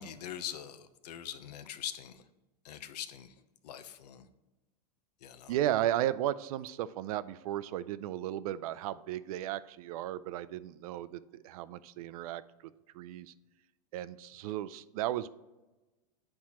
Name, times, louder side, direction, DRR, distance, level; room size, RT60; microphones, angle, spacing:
voice 1, 0.0-2.2 2.6-3.3 3.6-4.3 5.2-5.6, left 10 dB, 80° left, 11 dB, 0.7 m, -43 dB
voice 2, 5.5-12.4 12.9-13.3 13.9-15.3, right 13 dB, 65° right, 15 dB, 0.4 m, -34 dB
9.5 x 4.4 x 2.9 m, 1.1 s
supercardioid pair, 155°, 20 cm